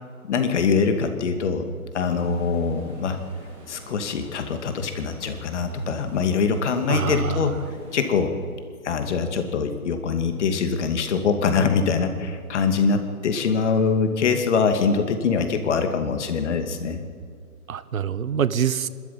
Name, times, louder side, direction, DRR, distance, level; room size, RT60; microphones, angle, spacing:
voice 1, 0.3-1.7 1.9-3.2 3.7-7.5 7.9-8.4 8.8-17.0, left 5 dB, 50° left, 7 dB, 2.5 m, -23 dB
sound 1, 2.0-8.2, right 1 dB, 30° right, 6.8 m, -46 dB
voice 2, 6.9-7.5 17.7-18.9, right 8 dB, 70° right, 16 dB, 1.1 m, -25 dB
25.0 x 13.0 x 8.8 m, 2.2 s
figure-of-eight pair, 135°, 43 cm